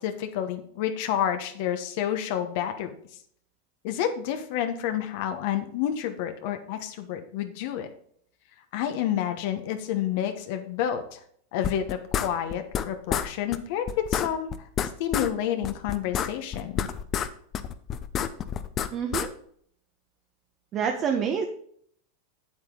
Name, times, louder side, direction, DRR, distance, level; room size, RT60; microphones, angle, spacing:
voice 1, 0.0-2.9 3.8-7.9 8.7-11.2 11.5-16.9, left 10 dB, 60° left, 7 dB, 1.1 m, -29 dB
sound 1, 11.6-12.8 13.1-13.3 13.5-13.6 13.9-15.3 15.6-17.3 17.5-19.3, left 9 dB, 35° left, 0.7 m, -28 dB
voice 2, 18.9-19.3 20.7-21.4, right 7 dB, 35° right, 3 dB, 1.0 m, -27 dB
7.8 x 7.8 x 3.8 m, 0.63 s
hypercardioid pair, 110°, 0 cm